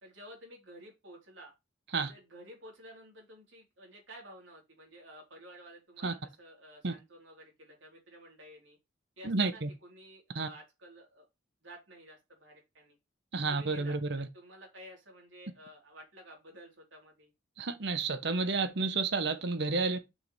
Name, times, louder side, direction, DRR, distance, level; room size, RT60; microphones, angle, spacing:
voice 1, 0.0-1.5 2.1-8.8 9.2-11.3 11.6-13.0 13.5-17.3, equal, 75° right, 3.7 m, -52 dB
voice 2, 9.2-9.7 10.3-10.5 13.3-14.3 17.6-20.0, right 3 dB, 60° right, 0.9 m, -31 dB
6.7 x 5.3 x 3.3 m
head